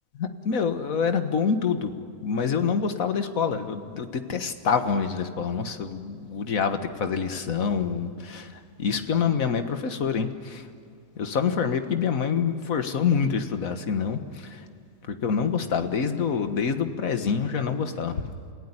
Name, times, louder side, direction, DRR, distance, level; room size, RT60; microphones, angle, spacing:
voice 1, 0.1-1.9 2.2-10.7 11.2-14.7 15.0-18.3, left 6 dB, 65° left, 8 dB, 1.8 m, -26 dB
28.0 x 16.5 x 9.8 m, 2.4 s
omnidirectional pair, 1.6 m